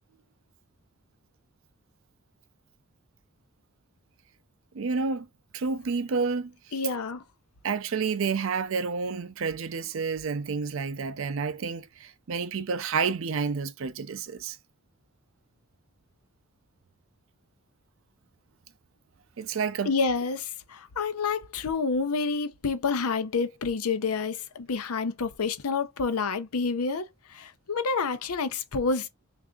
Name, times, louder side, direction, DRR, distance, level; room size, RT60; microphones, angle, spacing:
voice 1, 4.7-5.3 5.5-6.5 7.6-14.6 19.4-19.9, right 5 dB, 60° right, 0.4 m, -29 dB
voice 2, 6.7-7.2 19.9-29.1, left 4 dB, 80° left, 0.6 m, -28 dB
3.4 x 2.6 x 3.7 m
head